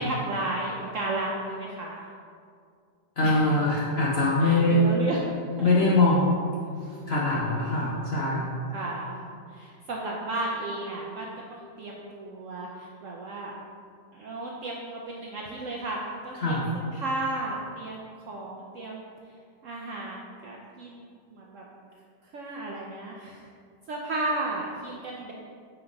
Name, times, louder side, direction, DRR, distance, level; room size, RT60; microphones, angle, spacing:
voice 1, 0.0-2.0 3.2-3.6 4.4-5.2 5.6-5.9 6.8-7.0 7.6-7.9 8.7-9.2 9.5-13.5 14.1-19.1 19.6-21.6 22.2-23.5 23.9-25.3, right 2 dB, 70° right, -2 dB, 0.7 m, -34 dB
voice 2, 3.2-4.9 5.6-6.3 7.1-8.6 16.4-16.7, left 2 dB, 55° left, -5 dB, 0.7 m, -23 dB
5.9 x 3.3 x 5.2 m, 2.3 s
omnidirectional pair, 1.9 m